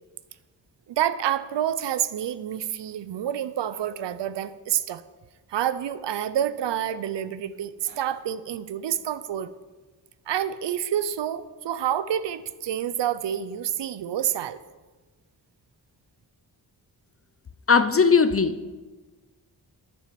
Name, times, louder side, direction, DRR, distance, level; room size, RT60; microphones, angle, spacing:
voice 1, 0.9-5.0 5.5-9.5 10.3-14.6, right 10 dB, 85° right, 0.6 m, -28 dB
voice 2, 17.7-18.7, left 5 dB, 35° left, 0.5 m, -19 dB
9.2 x 7.1 x 7.4 m
wide cardioid pair, 90°, 42 cm